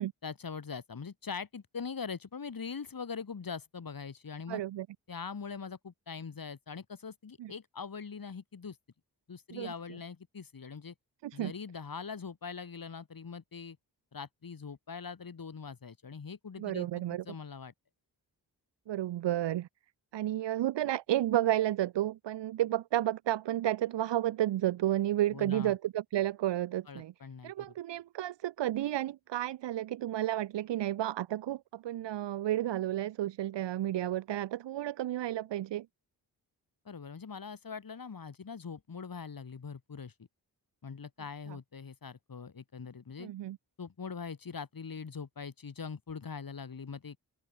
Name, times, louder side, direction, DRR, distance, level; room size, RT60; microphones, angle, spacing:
voice 1, 0.2-4.6 5.1-8.8 9.3-10.9 11.3-13.8 14.1-16.9 17.2-17.7 25.3-25.8 26.9-27.5 36.8-40.1 40.8-43.3 43.8-47.2, left 5 dB, 55° left, 4.8 m, -42 dB
voice 2, 4.5-4.9 7.4-7.5 9.5-9.7 11.2-11.5 16.6-17.2 18.9-19.7 20.1-27.1 27.4-35.9 41.5-41.6 43.2-43.6, right 13 dB, 80° right, 0.8 m, -32 dB
open air
cardioid pair, 60°, 42 cm